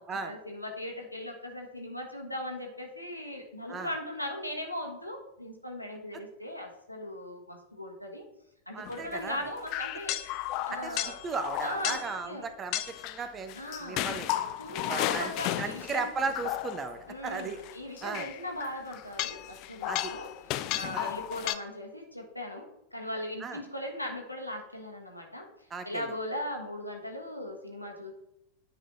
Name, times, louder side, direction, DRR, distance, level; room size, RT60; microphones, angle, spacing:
voice 1, 0.2-8.2 8.7-10.2 10.7-11.2 11.6-12.0 12.3-12.5 13.5-14.0 14.3-16.1 17.1-20.3 20.7-25.5 25.8-28.1, left 1 dB, 90° left, 1 dB, 1.4 m, -38 dB
voice 2, 8.7-9.4 10.7-13.5 13.8-14.3 14.9-15.3 15.6-17.6 18.0-18.3 19.9-20.1 20.9-21.1 23.4-23.6 25.7-26.1, right 4 dB, 25° right, 9 dB, 0.8 m, -36 dB
sound 1, 8.8-9.1 9.7-12.2 12.7-17.1 17.4-21.5, left 14 dB, 40° left, 0.4 m, -34 dB
9.5 x 5.0 x 3.8 m, 0.84 s
figure-of-eight pair, 90°, 0 cm